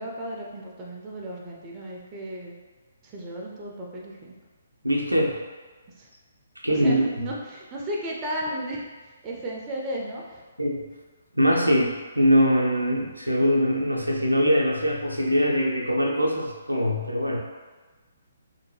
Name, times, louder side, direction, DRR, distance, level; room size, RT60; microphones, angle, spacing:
voice 1, 0.0-2.5 3.0-4.3 6.0-6.1 6.7-8.9 9.2-10.4, right 1 dB, 20° right, -3 dB, 0.4 m, -34 dB
voice 2, 4.8-5.4 6.6-7.0 10.6-10.8 11.3-17.4, equal, 90° right, -1 dB, 0.4 m, -22 dB
2.6 x 2.2 x 3.1 m, 1.3 s
figure-of-eight pair, 135°, 0 cm